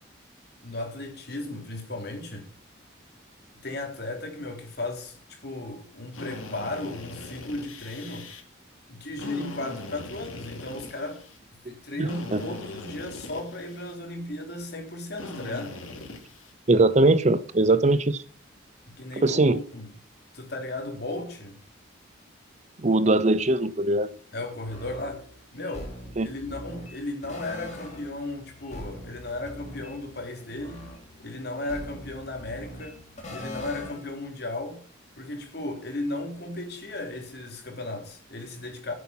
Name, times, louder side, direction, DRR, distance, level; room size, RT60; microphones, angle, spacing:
voice 1, 0.6-2.5 3.6-8.3 8.9-11.2 11.6-15.7 19.0-19.9 20.3-21.6 24.3-25.3 25.5-25.9 26.2-33.0 33.3-34.8 35.2-38.9, left 2 dB, 55° left, 3.5 m, -35 dB
Drill, 6.1-8.4 9.1-11.4 12.1-14.0 15.2-16.5, left 2 dB, 85° left, 2.8 m, -40 dB
voice 2, 12.0-12.4 16.7-18.2 19.2-19.6 22.8-24.1 26.2-26.3, right 2 dB, 35° right, 0.6 m, -21 dB
sound 1, 24.7-34.3, equal, 35° left, 3.1 m, -42 dB
11.0 x 8.5 x 5.9 m
head